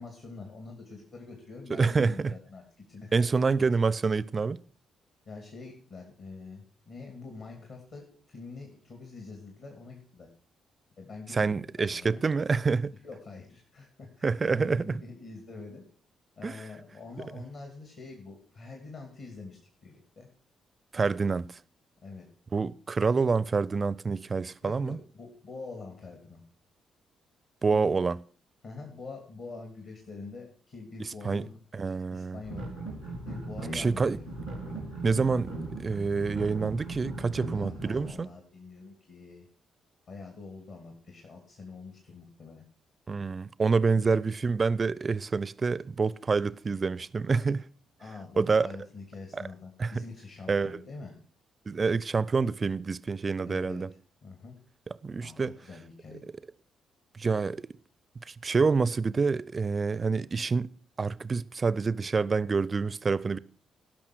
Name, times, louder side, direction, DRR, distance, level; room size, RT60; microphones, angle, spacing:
voice 1, 0.0-2.6 2.9-3.2 5.3-10.3 11.0-12.2 13.0-15.8 16.4-20.3 22.0-22.3 24.6-26.4 27.7-27.9 28.6-32.6 33.3-34.3 36.1-36.3 37.5-39.5 40.1-42.6 43.9-44.2 48.0-51.1 53.5-53.8 54.2-54.6 55.2-56.2, left 3 dB, 55° left, 2.6 m, -45 dB
voice 2, 1.8-2.3 3.1-4.6 11.3-12.9 14.2-14.9 16.4-16.6 20.9-21.5 22.5-25.0 27.6-28.2 31.0-31.5 31.7-32.4 33.7-34.2 35.0-38.3 43.1-47.7 48.4-48.7 49.3-49.4 49.8-50.0 50.5-50.8 51.7-53.9 55.0-55.5 57.1-57.7 58.3-60.7 61.0-63.4, right 4 dB, 35° right, 0.5 m, -27 dB
sound 1, 32.4-38.1, right 2 dB, 85° left, 3.2 m, -38 dB
17.5 x 6.1 x 6.2 m
figure-of-eight pair, 40°, 0 cm